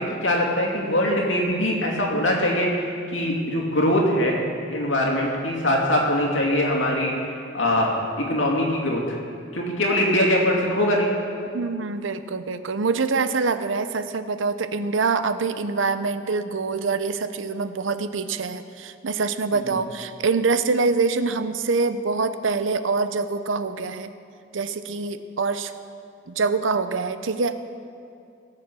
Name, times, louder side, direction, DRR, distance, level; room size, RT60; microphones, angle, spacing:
voice 1, 0.0-4.4 4.7-9.2 9.5-11.1 19.5-19.8, left 1 dB, 90° left, -1 dB, 2.6 m, -22 dB
voice 2, 11.5-24.1 24.5-25.7 26.3-27.5, right 4 dB, 85° right, 11 dB, 0.7 m, -25 dB
18.0 x 7.6 x 6.2 m, 2.3 s
head